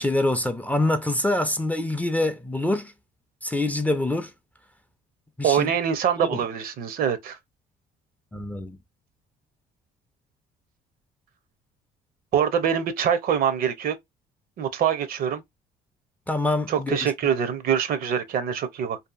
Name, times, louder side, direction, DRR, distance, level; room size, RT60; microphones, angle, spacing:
voice 1, 0.0-2.9 3.4-4.3 5.4-5.7 6.2-6.3 8.3-8.8 16.3-17.1, left 2 dB, 10° left, 0.4 m, -25 dB
voice 2, 5.4-7.4 12.3-14.0 14.6-15.4 16.7-19.0, right 8 dB, 60° right, 0.6 m, -24 dB
2.7 x 2.4 x 2.3 m
cardioid pair, 110°, 17 cm